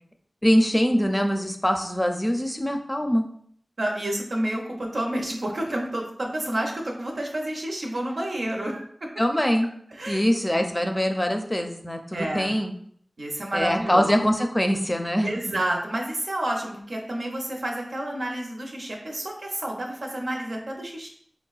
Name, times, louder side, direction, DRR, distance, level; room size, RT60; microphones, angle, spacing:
voice 1, 0.4-3.2 9.2-9.7 10.1-12.7 13.5-15.3, equal, 20° left, 4 dB, 0.5 m, -23 dB
voice 2, 3.8-9.1 9.9-10.2 12.1-12.6 13.2-14.1 15.2-21.1, right 1 dB, 80° right, 0 dB, 0.6 m, -29 dB
4.7 x 2.1 x 2.3 m, 0.64 s
wide cardioid pair, 40°, 0 cm